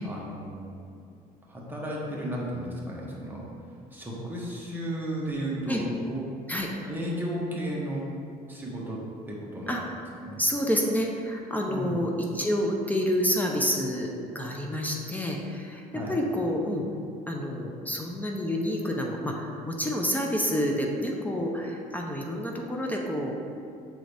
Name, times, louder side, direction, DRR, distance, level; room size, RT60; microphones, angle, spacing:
voice 1, 0.0-0.6 1.5-3.4 3.9-6.2 6.9-8.0 8.5-9.0 9.3-9.7 10.2-10.4 11.7-12.0 15.9-16.1, right 1 dB, 10° right, -5 dB, 1.3 m, -33 dB
voice 2, 10.4-14.1 14.3-16.9 17.3-23.3, equal, 10° left, 0 dB, 0.6 m, -28 dB
7.4 x 3.8 x 3.4 m, 2.5 s
cardioid pair, 110°, 17 cm